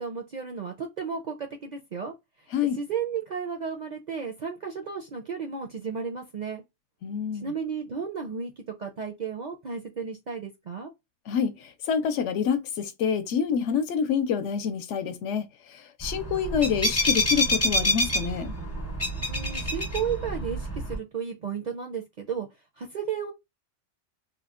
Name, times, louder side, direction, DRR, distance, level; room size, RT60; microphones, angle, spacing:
voice 1, 0.0-2.1 2.8-6.6 7.4-10.9 19.3-22.5 22.8-23.3, right 6 dB, 55° right, 0.5 m, -33 dB
voice 2, 7.0-7.5 11.3-15.5 15.7-18.5, left 7 dB, 75° left, 0.9 m, -27 dB
sound 1, 16.0-21.0, left 1 dB, 20° left, 0.4 m, -27 dB
2.9 x 2.1 x 2.4 m
omnidirectional pair, 1.2 m